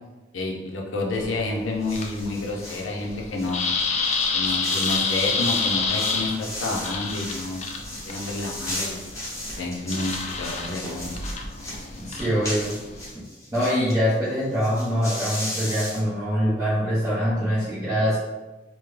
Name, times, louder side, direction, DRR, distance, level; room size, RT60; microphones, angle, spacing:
voice 1, 0.3-3.6 4.3-9.0 9.6-11.2, left 2 dB, 85° left, 0 dB, 0.6 m, -29 dB
sound 1, 1.1-13.1, left 4 dB, 35° left, 0.4 m, -29 dB
sound 2, 1.8-2.9 3.4-14.0 14.2-14.3 14.5-16.0, left 1 dB, 15° left, 0.9 m, -36 dB
voice 2, 12.0-12.8 13.1-13.2 13.5-18.2, equal, 20° right, -13 dB, 0.9 m, -24 dB
3.5 x 2.2 x 3.2 m, 1.1 s
head